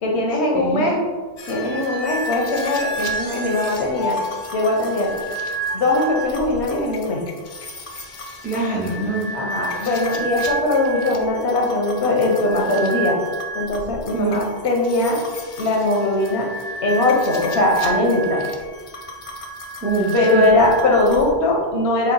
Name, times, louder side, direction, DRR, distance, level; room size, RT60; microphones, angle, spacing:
voice 1, 0.0-1.0 1.5-4.2 4.5-5.1 5.7-7.2 9.3-13.2 13.5-15.2 15.6-16.5 16.8-18.4 20.1-22.1, left 2 dB, 80° left, 0 dB, 1.1 m, -20 dB
voice 2, 0.5-0.8 8.4-9.2 9.7-9.9 14.1-14.3 19.8-20.5, right 3 dB, 10° right, -4 dB, 0.4 m, -24 dB
sound 1, 1.4-21.3, right 2 dB, 60° left, 0.7 m, -31 dB
4.3 x 2.0 x 3.9 m, 1.4 s
omnidirectional pair, 1.1 m